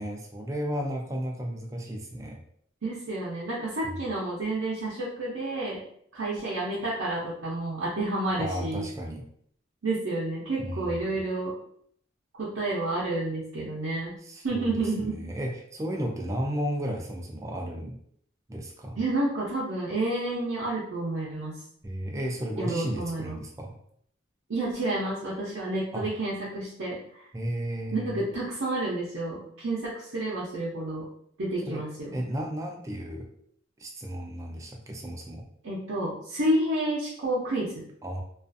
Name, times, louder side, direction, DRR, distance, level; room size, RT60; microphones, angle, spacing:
voice 1, 0.0-2.4 8.4-9.2 10.6-11.2 14.2-18.0 18.5-19.0 21.8-23.8 25.9-26.1 27.3-28.2 31.7-31.8 32.1-33.3 33.8-35.5 38.0-38.2, equal, 15° right, 1 dB, 0.3 m, -34 dB
voice 2, 2.8-5.8 6.1-8.8 9.8-11.5 12.4-14.1 14.4-15.2 19.0-21.5 22.6-23.3 24.5-27.0 27.9-31.0 31.4-32.1 35.6-37.9, right 2 dB, 85° right, -7 dB, 0.6 m, -30 dB
2.4 x 2.3 x 2.5 m, 0.65 s
head